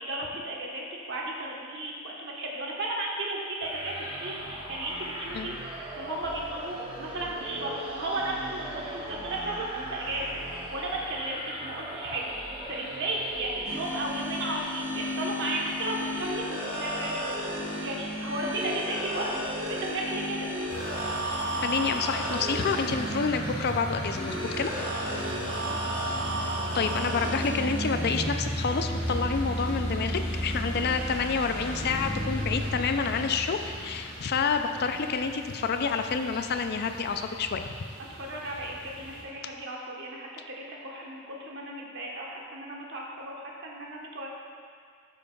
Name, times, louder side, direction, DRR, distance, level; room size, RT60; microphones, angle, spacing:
voice 1, 0.0-17.5 17.8-20.5 25.7-25.8 38.2-44.4, right 1 dB, 60° right, -2 dB, 1.3 m, -34 dB
sound 1, 3.6-14.2, right 1 dB, 25° right, 1.2 m, -40 dB
sound 2, 13.7-32.7, equal, 80° right, 1.7 m, -34 dB
sound 3, 20.7-39.2, equal, 25° left, 1.5 m, -36 dB
voice 2, 21.6-24.7 26.7-37.7, left 5 dB, 50° left, 7 dB, 0.4 m, -28 dB
12.0 x 6.9 x 2.4 m, 2.1 s
head